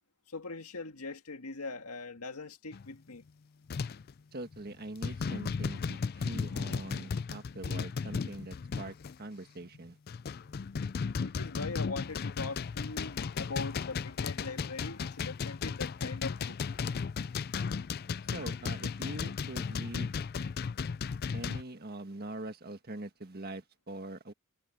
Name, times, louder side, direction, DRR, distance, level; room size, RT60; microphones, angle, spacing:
voice 1, 0.3-3.2 11.2-16.6, left 3 dB, 85° left, 2.0 m, -41 dB
sound 1, 2.7-3.0 3.7-4.1 4.5-4.7 5.0-9.2 9.7-21.6, left 5 dB, 45° left, 0.4 m, -35 dB
voice 2, 4.3-10.0 18.3-20.1 21.3-24.3, right 2 dB, 45° right, 1.7 m, -43 dB
head